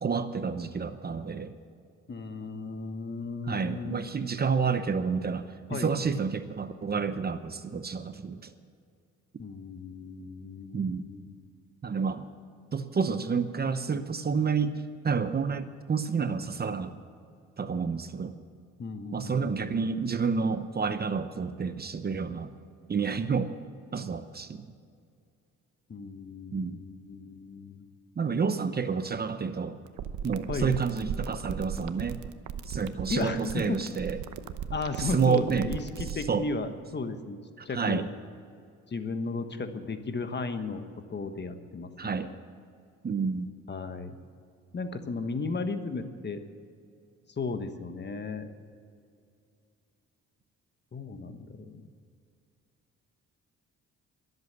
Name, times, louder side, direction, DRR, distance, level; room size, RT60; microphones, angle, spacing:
voice 1, 0.0-1.5 3.5-8.5 10.7-11.0 11.8-12.3 12.7-16.9 17.6-18.3 19.1-22.5 22.9-23.5 23.9-24.7 26.5-26.8 28.2-29.8 30.2-32.2 32.7-34.2 35.0-35.7 36.3-36.4 37.6-38.1 42.0-42.3 43.0-43.5, right 5 dB, 30° right, 10 dB, 0.9 m, -29 dB
voice 2, 2.1-4.1 5.7-5.9 9.4-11.4 18.8-19.8 25.9-27.8 30.5-30.7 33.1-34.0 34.7-37.4 37.6-38.0 38.9-40.8 41.1-42.4 43.7-44.2 44.7-46.4 47.3-48.5 50.9-51.8, left 4 dB, 35° left, 8 dB, 1.3 m, -35 dB
sound 1, 29.9-36.2, right 8 dB, 75° right, 0.9 m, -36 dB
22.0 x 8.1 x 6.8 m, 2.3 s
cardioid pair, 90°, 30 cm